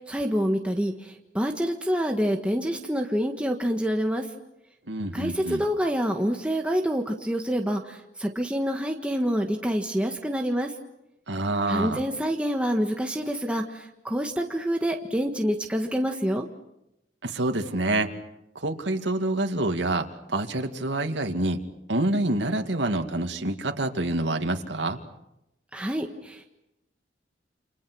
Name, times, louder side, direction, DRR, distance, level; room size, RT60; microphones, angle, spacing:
voice 1, 0.1-4.2 5.1-10.7 11.7-16.5 25.7-26.4, equal, 5° right, 2 dB, 1.6 m, -27 dB
voice 2, 4.9-5.7 11.3-12.0 17.2-18.1 18.5-21.6 21.9-25.0, right 2 dB, 80° right, 4 dB, 2.3 m, -27 dB
29.5 x 27.5 x 6.3 m, 0.87 s
head